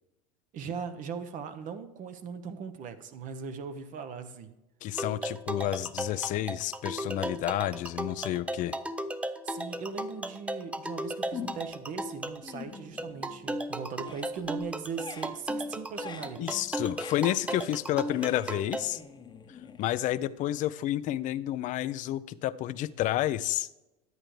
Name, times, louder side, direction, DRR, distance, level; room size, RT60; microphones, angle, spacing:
voice 1, 0.5-4.5 9.4-16.6, right 6 dB, 45° right, 9 dB, 1.0 m, -39 dB
voice 2, 4.8-8.8 16.4-19.0 19.5-23.7, left 13 dB, 45° left, 16 dB, 0.5 m, -30 dB
sound 1, 5.0-18.8, right 1 dB, 5° right, 0.5 m, -36 dB
sound 2, 11.3-11.9 12.2-13.6 13.9-20.4, left 7 dB, 25° left, 0.9 m, -46 dB
11.0 x 8.7 x 3.2 m, 0.96 s
hypercardioid pair, 85°, 19 cm